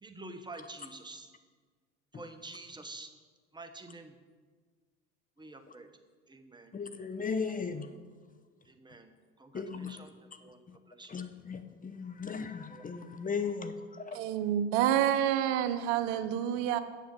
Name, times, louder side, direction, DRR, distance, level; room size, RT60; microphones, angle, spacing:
voice 1, 0.0-1.3 2.1-3.1 3.5-4.2 5.4-5.9 6.3-6.8 7.8-8.0 8.6-11.2 12.7-12.9, right 2 dB, 10° right, 7 dB, 1.1 m, -48 dB
voice 2, 6.7-7.9 9.5-10.0 10.7-10.8 11.1-14.2, left 5 dB, 25° left, 9 dB, 0.7 m, -37 dB
voice 3, 14.1-16.8, right 10 dB, 70° right, 11 dB, 0.7 m, -28 dB
7.4 x 7.1 x 7.1 m, 1.5 s
hypercardioid pair, 75°, 36 cm